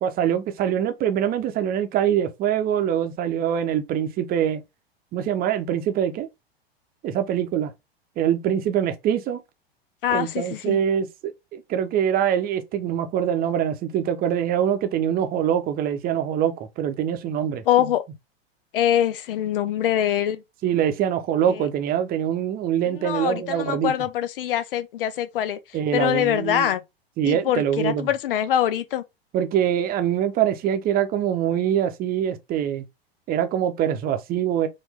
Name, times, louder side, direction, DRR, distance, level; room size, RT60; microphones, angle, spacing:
voice 1, 0.0-4.6 5.1-6.3 7.0-7.7 8.2-9.4 10.1-17.9 20.6-23.9 25.7-26.8 27.2-28.1 29.3-32.8 33.3-34.7, right 9 dB, 30° right, 0.8 m, -24 dB
voice 2, 10.0-10.8 17.7-18.0 18.7-20.4 21.5-21.7 22.9-25.6 25.9-26.8 27.2-29.0, left 11 dB, 60° left, 0.8 m, -24 dB
4.4 x 2.7 x 3.5 m
figure-of-eight pair, 90°, 31 cm